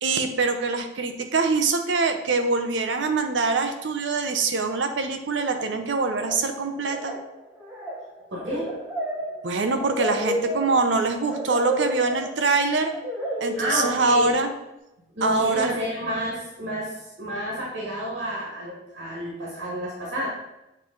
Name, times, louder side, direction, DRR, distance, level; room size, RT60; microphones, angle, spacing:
voice 1, 0.0-7.1 9.4-12.9 13.4-14.5 15.2-15.7, right 3 dB, 70° right, 6 dB, 0.7 m, -24 dB
sound 1, 5.4-5.8 6.1-6.5 6.8-14.4, right 1 dB, 10° right, 0.9 m, -32 dB
voice 2, 8.3-8.7 13.6-14.3 15.1-20.3, equal, 90° right, -5 dB, 1.8 m, -30 dB
7.6 x 3.1 x 3.9 m, 0.91 s
head